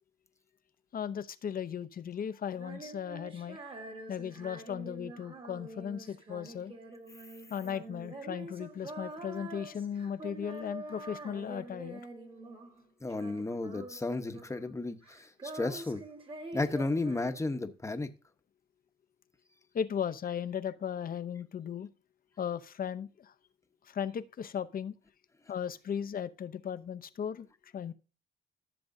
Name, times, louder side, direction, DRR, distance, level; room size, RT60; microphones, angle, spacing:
voice 1, 0.9-3.6 4.1-6.7 7.5-12.0 19.7-21.9 22.4-23.3 23.9-24.9 25.5-27.9, left 8 dB, 45° left, 0.7 m, -36 dB
Female singing, 2.5-12.8 13.1-14.8 15.0-17.7, right 2 dB, 25° right, 1.6 m, -46 dB
voice 2, 13.0-16.0 16.5-18.1, left 2 dB, 15° left, 1.0 m, -33 dB
14.0 x 6.9 x 2.7 m
cardioid pair, 90°, 20 cm